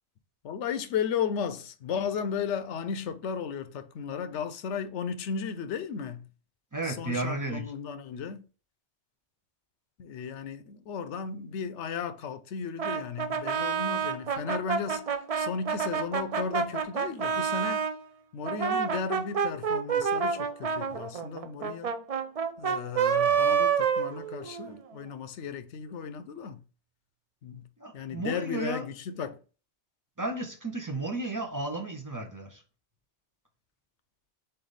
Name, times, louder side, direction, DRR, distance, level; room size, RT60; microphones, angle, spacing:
voice 1, 0.4-6.3 6.8-8.4 10.0-15.1 15.4-17.8 18.3-21.9 22.6-26.6 27.4-27.7 27.9-29.4, left 6 dB, 85° left, 0.9 m, -35 dB
voice 2, 6.7-7.6 27.8-28.8 30.2-32.6, right 2 dB, 20° right, 0.7 m, -33 dB
Brass instrument, 12.8-18.0 18.4-24.8, right 6 dB, 50° right, 0.4 m, -28 dB
3.9 x 3.4 x 3.9 m
omnidirectional pair, 1.2 m